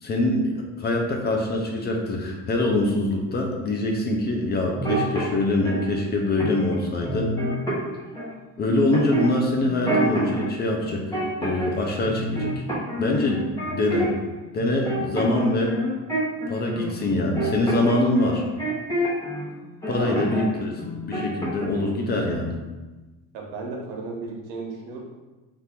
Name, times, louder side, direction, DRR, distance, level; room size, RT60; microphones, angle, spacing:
voice 1, 0.0-7.3 8.6-11.0 11.4-12.6 13.0-14.1 14.5-15.8 16.5-18.4 19.9-22.6, left 2 dB, 25° left, 1 dB, 0.4 m, -24 dB
sound 1, 4.8-5.8 6.4-6.7 7.0-8.3 8.9-10.5 10.8-11.8 12.0-14.3 14.6-19.4 19.8-20.5 20.8-21.8 22.1-22.3, right 1 dB, 10° left, 1.0 m, -28 dB
voice 2, 23.3-25.0, right 3 dB, 85° right, 0 dB, 1.0 m, -34 dB
3.6 x 2.5 x 4.2 m, 1.2 s
cardioid pair, 155°, 38 cm